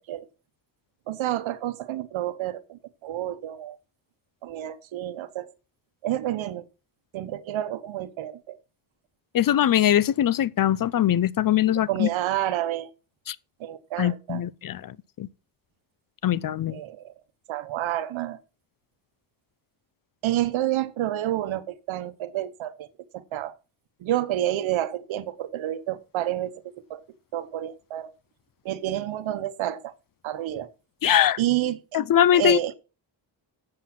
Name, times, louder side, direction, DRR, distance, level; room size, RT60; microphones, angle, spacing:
voice 1, 1.1-3.8 4.4-5.5 6.0-6.7 7.1-8.6 11.9-12.9 13.6-14.4 16.7-17.1 17.5-18.4 20.2-22.9 23.1-23.5 24.0-26.6 26.9-27.0 27.3-28.1 28.6-29.9 30.2-30.7 31.4-32.0 32.3-32.7, right 13 dB, 80° right, 1.0 m, -29 dB
voice 2, 9.3-12.1 13.3-13.4 14.0-15.3 16.2-16.8 31.0-31.4 31.9-32.6, left 11 dB, 45° left, 0.6 m, -22 dB
7.6 x 7.5 x 5.8 m
cardioid pair, 75°, 46 cm